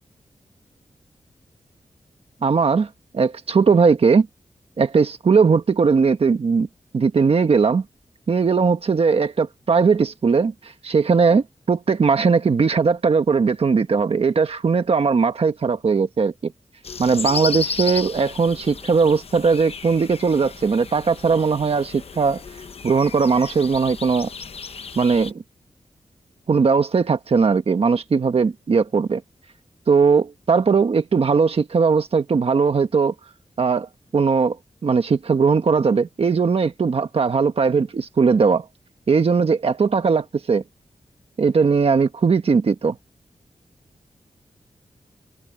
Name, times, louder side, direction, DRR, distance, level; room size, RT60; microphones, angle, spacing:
voice 1, 2.4-4.3 4.8-6.7 6.9-7.8 8.3-16.5 17.0-22.4 22.8-24.3 24.9-25.4 26.5-29.2 29.9-33.1 33.6-34.6 34.8-38.7 39.1-40.6 41.4-43.0, right 5 dB, 55° right, 1.4 m, -19 dB
sound 1, 16.8-25.3, left 5 dB, 55° left, 1.0 m, -33 dB
wide cardioid pair, 135°, 12 cm